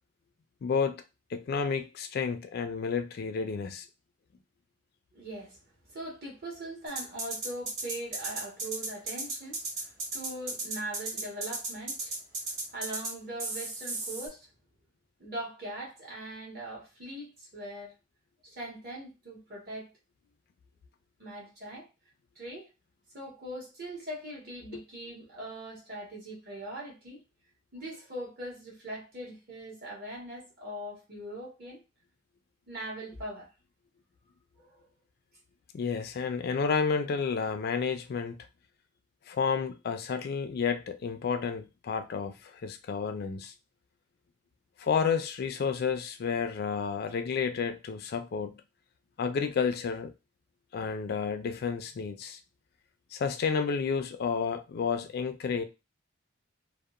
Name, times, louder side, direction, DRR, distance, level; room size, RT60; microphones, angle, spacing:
voice 1, 0.6-1.0 1.3-3.9 24.7-24.8 35.7-38.4 39.3-43.5 44.8-48.6 49.2-50.1 50.7-52.4 53.1-55.6, left 6 dB, 50° left, 0.3 m, -31 dB
voice 2, 5.1-5.6 5.9-12.2 12.5-14.5 15.2-17.9 18.4-19.9 21.2-21.9 22.3-22.7 23.1-27.2 27.7-31.8 32.7-33.5 34.6-34.9, right 1 dB, 50° right, 1.3 m, -41 dB
sound 1, 6.9-13.1 13.4-14.3, right 3 dB, 75° right, 1.4 m, -35 dB
2.7 x 2.1 x 2.4 m
head